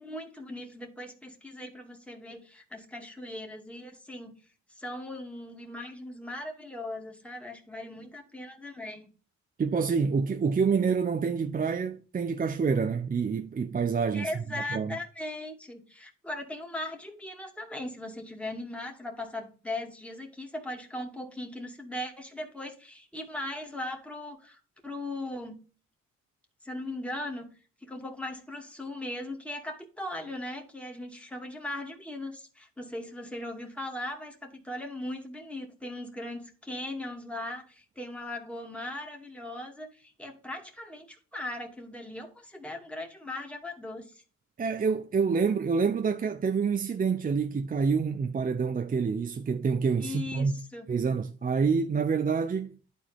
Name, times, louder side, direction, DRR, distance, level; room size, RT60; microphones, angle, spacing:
voice 1, 0.0-4.4 4.7-9.1 14.1-25.6 26.6-27.5 27.8-44.2 50.0-50.9, left 1 dB, 5° left, 2.3 m, -39 dB
voice 2, 9.6-14.3 14.7-15.0 44.6-50.5 50.9-52.8, right 5 dB, 30° right, 0.6 m, -27 dB
11.5 x 4.4 x 3.4 m
cardioid pair, 90°, 30 cm